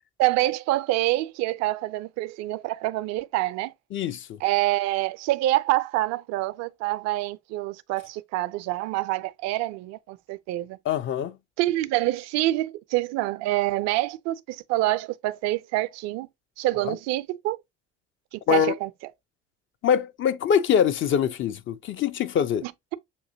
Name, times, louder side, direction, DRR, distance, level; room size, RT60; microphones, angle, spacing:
voice 1, 0.2-3.7 4.4-10.8 11.6-16.3 16.6-17.6 18.3-18.9 22.6-22.9, right 17 dB, 50° right, 0.4 m, -26 dB
voice 2, 3.9-4.4 10.8-11.4 16.8-17.0 18.5-18.7 19.8-22.7, left 8 dB, 35° left, 0.5 m, -24 dB
6.5 x 2.6 x 2.5 m
figure-of-eight pair, 50°, 34 cm